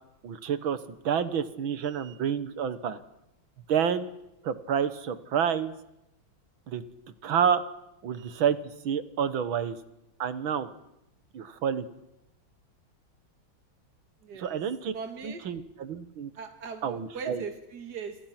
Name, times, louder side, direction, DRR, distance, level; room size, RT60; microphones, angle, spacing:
voice 1, 0.2-3.0 3.7-4.1 4.4-5.8 6.7-6.8 7.2-7.6 8.0-8.6 8.8-9.8 10.2-10.7 11.3-11.9 14.4-14.9 15.2-16.3 16.8-17.4, right 8 dB, 80° right, 13 dB, 2.2 m, -28 dB
voice 2, 14.2-14.6 14.9-15.4 16.4-18.2, right 5 dB, 55° right, 6 dB, 2.6 m, -39 dB
29.5 x 26.5 x 6.0 m, 0.87 s
omnidirectional pair, 2.1 m